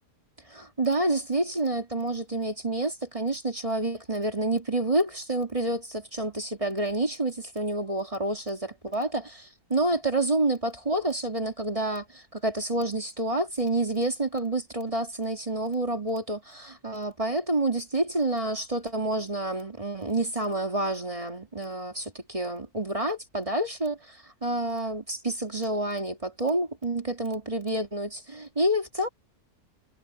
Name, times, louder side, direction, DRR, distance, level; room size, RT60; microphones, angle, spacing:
voice 1, 0.5-29.1, right 1 dB, 20° right, 2.3 m, -28 dB
omnidirectional pair, 1.6 m